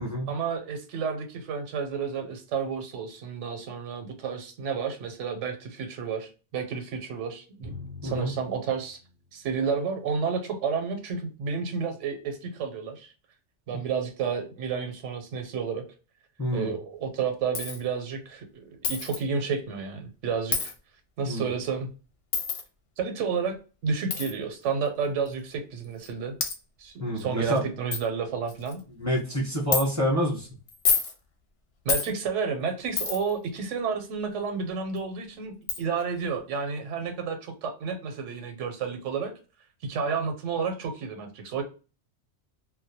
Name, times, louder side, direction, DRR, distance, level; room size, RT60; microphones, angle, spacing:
voice 1, 0.3-7.7 8.0-9.0 9.3-13.1 13.7-15.8 16.5-20.7 21.2-21.9 23.0-23.6 23.8-26.3 26.8-28.8 31.8-39.3 39.8-41.6, right 5 dB, 85° right, 7 dB, 0.9 m, -31 dB
Drum, 7.6-10.0, left 3 dB, 30° right, 0.5 m, -45 dB
voice 2, 8.0-8.3 16.4-16.7 21.3-21.5 27.0-27.6 29.0-30.5, equal, 15° left, -4 dB, 0.7 m, -27 dB
Coin (dropping), 17.5-17.8 18.8-19.2 20.5-20.7 22.3-22.6 24.1-24.3 25.3-25.4 26.0-26.1 26.4-26.6 27.2-27.3 27.6-27.7 27.9-28.0 28.5-28.8 29.7-29.8 30.7-31.1 31.9-32.1 33.0-33.3 35.0-35.1 35.7-35.8, left 6 dB, 65° left, 0.8 m, -27 dB
2.2 x 2.1 x 2.7 m, 0.34 s
omnidirectional pair, 1.2 m